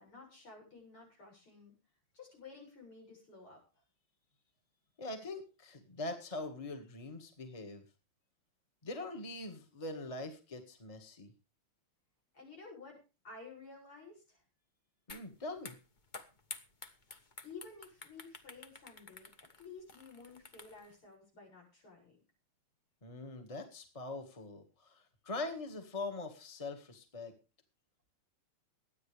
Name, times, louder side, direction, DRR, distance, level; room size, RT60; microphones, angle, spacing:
voice 1, 0.0-1.8 2.1-3.6 12.3-14.4 17.4-19.3 19.6-22.2, left 4 dB, 85° left, 1 dB, 7.8 m, -53 dB
voice 2, 5.0-7.8 8.8-11.3 15.1-15.8 23.0-27.3, left 2 dB, 15° left, 5 dB, 1.7 m, -43 dB
sound 1, 15.1-15.3 15.6-20.9, left 3 dB, 35° left, 0.8 m, -50 dB
22.5 x 9.4 x 3.4 m, 0.31 s
omnidirectional pair, 2.3 m